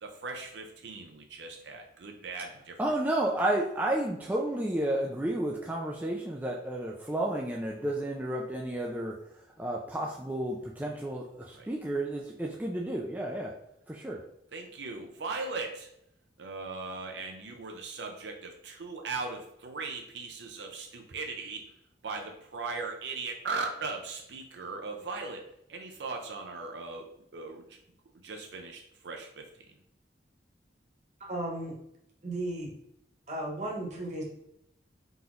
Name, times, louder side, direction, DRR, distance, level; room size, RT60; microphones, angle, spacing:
voice 1, 0.0-2.9 11.5-11.7 14.5-15.9 16.4-21.7 22.0-25.4 25.7-27.8 28.2-29.6, right 4 dB, 70° right, 3 dB, 0.5 m, -38 dB
voice 2, 2.8-9.2 9.6-13.6 13.9-14.2, right 1 dB, 10° right, -1 dB, 0.3 m, -31 dB
voice 3, 31.3-31.7 32.2-32.7 33.3-34.2, right 1 dB, 40° right, -2 dB, 1.1 m, -34 dB
3.9 x 2.9 x 3.8 m, 0.76 s
head